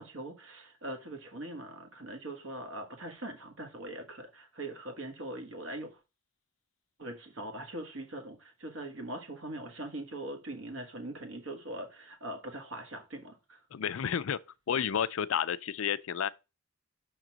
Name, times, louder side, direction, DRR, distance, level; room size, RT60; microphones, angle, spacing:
voice 1, 0.0-6.0 7.0-13.6, right 1 dB, 70° right, 1.5 m, -42 dB
voice 2, 13.7-14.4 14.7-16.3, left 8 dB, 80° left, 0.4 m, -31 dB
5.9 x 3.9 x 6.0 m
head